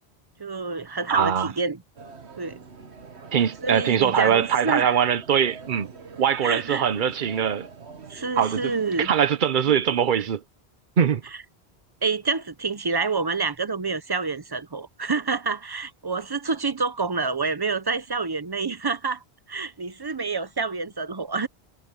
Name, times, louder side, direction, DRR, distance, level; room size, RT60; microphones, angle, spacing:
voice 1, 0.4-1.8 2.4-2.6 3.6-5.0 6.4-6.8 8.1-9.1 12.0-19.2 19.5-21.5, right 4 dB, 25° right, 0.6 m, -27 dB
voice 2, 1.1-1.5 3.3-5.9 6.2-7.7 8.4-10.4 11.0-11.2, right 8 dB, 55° right, 0.8 m, -22 dB
sound 1, 2.0-9.2, right 5 dB, 85° right, 1.7 m, -45 dB
omnidirectional pair, 1.1 m